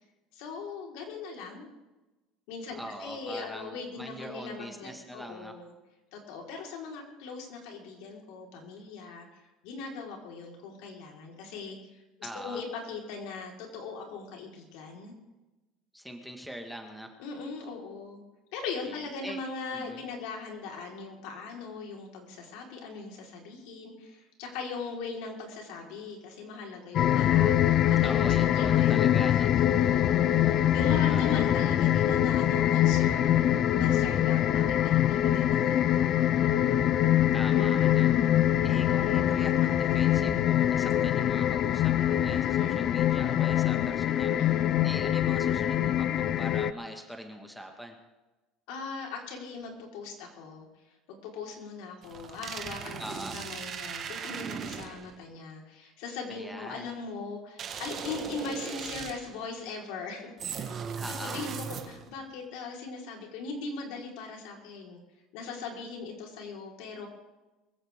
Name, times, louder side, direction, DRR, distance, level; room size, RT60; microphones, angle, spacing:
voice 1, 0.3-1.7 2.5-5.7 6.1-9.3 9.6-12.0 12.4-15.1 17.2-18.2 18.5-33.3 33.8-36.0 42.4-42.8 44.4-44.7 48.7-50.7 51.1-60.8 61.2-65.0 65.3-67.1, left 4 dB, 70° left, 0 dB, 4.3 m, -40 dB
voice 2, 2.8-5.5 12.2-12.6 15.9-17.1 18.9-19.4 19.7-20.0 28.0-29.5 31.1-31.4 37.3-38.3 38.6-44.4 44.8-48.0 53.0-53.4 56.3-56.9 60.9-61.4, equal, ahead, 4 dB, 1.6 m, -42 dB
sound 1, 26.9-46.7, left 11 dB, 40° left, 0.5 m, -24 dB
sound 2, 52.0-55.2 57.6-59.4 60.4-62.1, right 7 dB, 30° right, 1.5 m, -38 dB
23.0 x 15.0 x 3.7 m, 1.1 s
cardioid pair, 155°, 0 cm